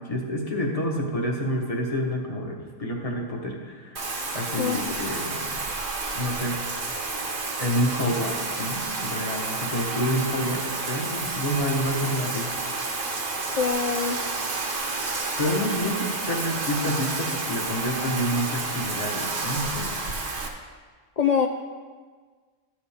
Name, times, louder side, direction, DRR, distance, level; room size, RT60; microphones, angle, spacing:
voice 1, 0.0-4.0 4.3-5.6 6.1-6.6 7.6-12.5 12.9-13.0 15.4-19.9, equal, 30° left, 0 dB, 1.4 m, -28 dB
Bathtub (filling or washing), 3.9-20.5, right 3 dB, 60° right, 1.4 m, -30 dB
voice 2, 4.6-4.9 13.6-14.2 21.2-21.5, left 7 dB, 70° left, 3 dB, 0.3 m, -24 dB
13.5 x 7.9 x 3.5 m, 1.5 s
omnidirectional pair, 1.3 m